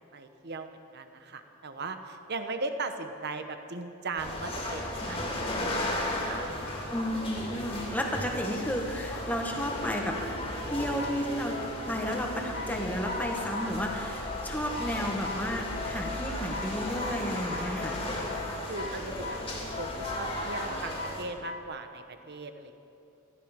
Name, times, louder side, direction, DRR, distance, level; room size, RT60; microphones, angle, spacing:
voice 1, 0.1-5.4 5.7-6.6 18.6-22.8, right 3 dB, 50° right, 8 dB, 1.1 m, -38 dB
sound 1, 4.2-21.2, left 1 dB, 25° left, 2.8 m, -35 dB
voice 2, 6.9-10.2 10.7-11.6 11.9-18.0, equal, 10° left, 1 dB, 1.6 m, -32 dB
sound 2, 10.8-21.7, left 3 dB, 55° left, 2.4 m, -42 dB
18.0 x 14.5 x 5.2 m, 2.8 s
head